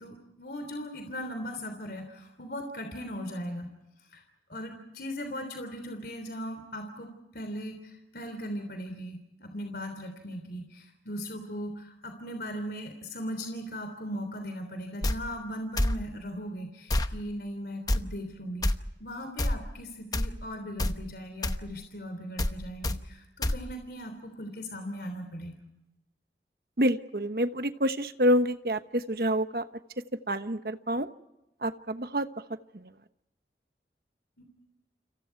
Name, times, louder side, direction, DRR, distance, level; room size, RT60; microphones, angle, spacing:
voice 1, 0.0-3.7 4.1-4.2 4.5-18.7 19.0-25.5 34.4-34.5, equal, 65° left, 6 dB, 3.3 m, -38 dB
sound 1, 15.0-15.2 15.8-16.0 16.9-17.1 17.9-18.0 18.6-18.7 19.4-19.6 20.1-20.3 20.8-21.0 21.4-21.6 22.4-22.6 22.8-23.0 23.4-23.6, left 1 dB, 20° left, 0.9 m, -26 dB
voice 2, 26.8-29.6 30.3-31.1 31.6-32.3, equal, 60° right, 10 dB, 1.1 m, -27 dB
29.5 x 27.0 x 4.6 m, 0.94 s
head